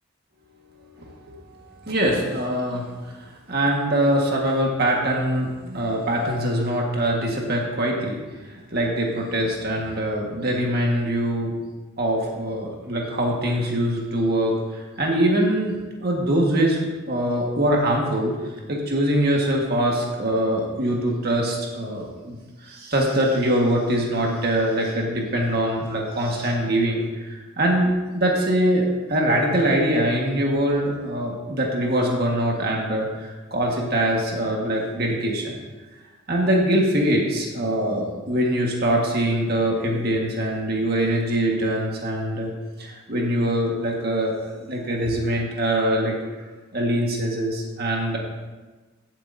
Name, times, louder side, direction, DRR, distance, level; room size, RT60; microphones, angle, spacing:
voice 1, 1.0-1.4 1.9-2.9 3.5-11.5 12.0-18.4 18.7-22.4 22.6-35.5 36.3-42.5 42.8-46.1 46.7-48.2, right 1 dB, 50° right, -1 dB, 1.7 m, -23 dB
16.0 x 7.7 x 2.7 m, 1.3 s
head